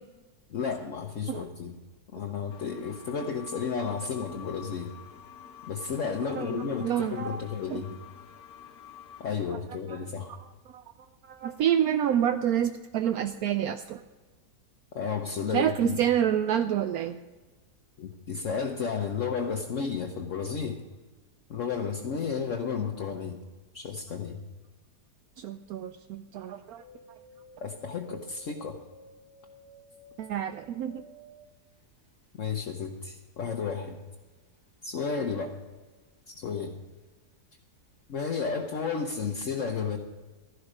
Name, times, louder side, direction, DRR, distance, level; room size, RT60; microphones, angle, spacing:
voice 1, 0.5-1.8 2.1-4.9 5.6-8.0 9.2-10.3 14.9-16.0 18.0-20.8 21.5-23.4 23.7-24.4 27.6-28.8 32.4-34.0 34.8-35.6 36.3-36.8 38.1-40.0, left 6 dB, 55° left, 2 dB, 1.2 m, -32 dB
sound 1, 2.5-9.3, left 9 dB, 75° left, 1.3 m, -49 dB
voice 2, 6.4-7.4 7.7-7.8 9.9-10.0 10.7-10.8 11.2-14.0 15.5-17.2 25.4-26.8 30.2-31.0, right 10 dB, 75° right, 9 dB, 1.0 m, -28 dB
sound 2, 26.8-36.2 36.4-37.3 37.6-38.6 39.0-39.1, equal, 15° right, 2.4 m, -55 dB
13.0 x 11.5 x 5.0 m, 1.3 s
omnidirectional pair, 1.7 m